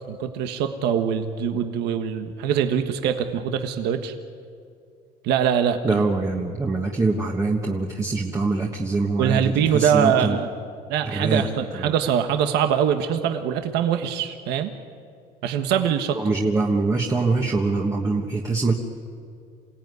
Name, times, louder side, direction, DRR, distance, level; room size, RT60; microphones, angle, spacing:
voice 1, 0.1-4.1 5.2-6.0 9.2-10.5 10.9-14.7 15.4-16.2, right 8 dB, 80° right, 7 dB, 1.4 m, -23 dB
voice 2, 5.8-10.4 11.0-11.4 11.7-11.9 16.1-18.7, right 3 dB, 20° right, 0 dB, 1.5 m, -24 dB
27.5 x 17.5 x 9.6 m, 2.4 s
cardioid pair, 140°, 17 cm